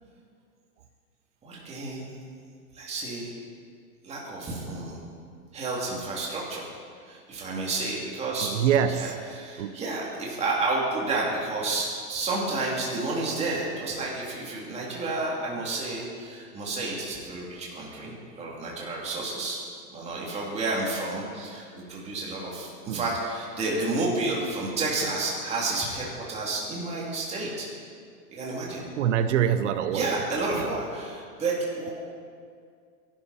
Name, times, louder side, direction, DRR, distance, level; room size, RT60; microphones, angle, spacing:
voice 1, 1.4-2.1 2.7-3.4 4.0-5.0 5.5-6.7 7.1-8.5 8.9-19.6 19.9-27.7 28.3-28.8 29.9-31.9, right 2 dB, 15° right, -4 dB, 2.9 m, -30 dB
voice 2, 8.4-9.1 9.6-9.8 22.9-23.0 29.0-30.2 30.5-30.7, right 9 dB, 50° right, 11 dB, 0.9 m, -25 dB
23.5 x 12.0 x 4.3 m, 2.2 s
supercardioid pair, 165°, 47 cm